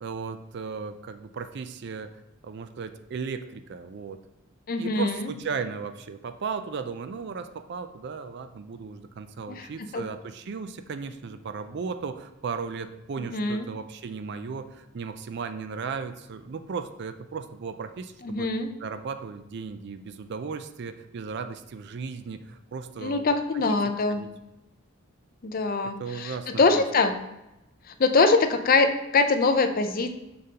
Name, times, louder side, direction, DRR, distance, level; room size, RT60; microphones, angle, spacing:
voice 1, 0.0-4.2 4.8-18.5 18.8-23.3 23.5-23.8 24.1-24.3 26.0-26.8, right 5 dB, 55° right, 9 dB, 0.4 m, -36 dB
voice 2, 4.7-5.3 9.5-9.7 9.9-10.1 13.3-13.7 18.2-18.7 23.0-24.2 25.4-27.1 28.0-30.1, left 3 dB, 45° left, 8 dB, 0.5 m, -23 dB
6.7 x 5.2 x 2.8 m, 0.95 s
head